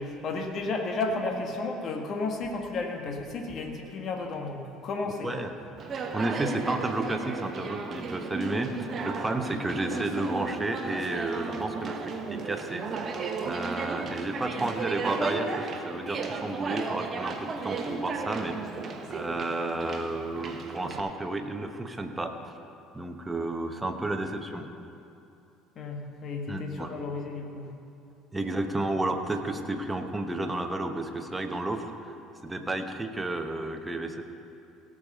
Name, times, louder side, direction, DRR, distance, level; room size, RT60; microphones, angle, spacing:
voice 1, 0.0-5.3 25.7-27.7, left 3 dB, 45° left, 3 dB, 1.5 m, -33 dB
Conversation, 5.8-21.0, right 4 dB, 40° right, 1.1 m, -35 dB
voice 2, 6.1-12.8 13.4-22.4 22.9-24.7 26.5-26.9 28.3-32.1 32.4-34.2, right 2 dB, 15° right, 5 dB, 1.1 m, -32 dB
17.0 x 6.5 x 5.5 m, 2.8 s
figure-of-eight pair, 60°, 0 cm